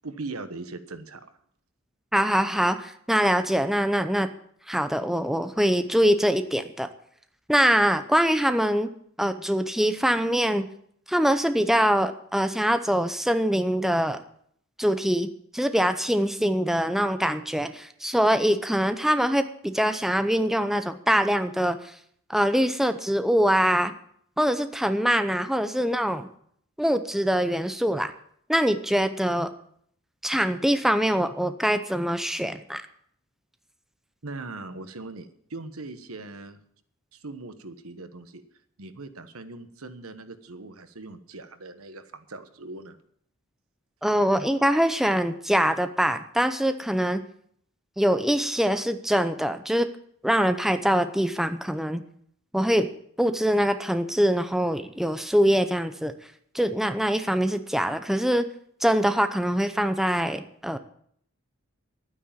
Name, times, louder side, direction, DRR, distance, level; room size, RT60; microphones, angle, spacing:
voice 1, 0.0-1.3 34.2-36.6 37.1-38.4 38.8-43.0, right 3 dB, 90° right, 10 dB, 1.3 m, -40 dB
voice 2, 2.1-4.3 4.7-6.9 7.5-8.9 9.2-10.7 11.1-14.2 14.8-21.8 22.3-23.9 24.4-26.2 26.8-28.1 28.5-29.5 30.2-32.8 44.0-47.2 48.0-49.9 50.2-52.0 52.5-52.9 53.2-56.1 56.5-58.5 58.8-60.8, equal, ahead, 9 dB, 0.7 m, -23 dB
11.5 x 9.6 x 7.3 m, 0.65 s
head